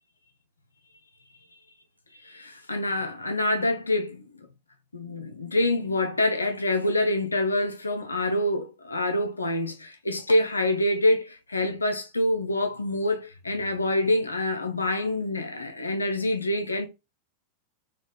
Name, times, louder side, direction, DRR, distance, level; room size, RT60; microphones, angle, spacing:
voice 1, 2.2-4.3 4.9-16.9, left 1 dB, 80° left, 0.4 m, -26 dB
4.2 x 2.2 x 2.2 m
figure-of-eight pair, 90°, 0 cm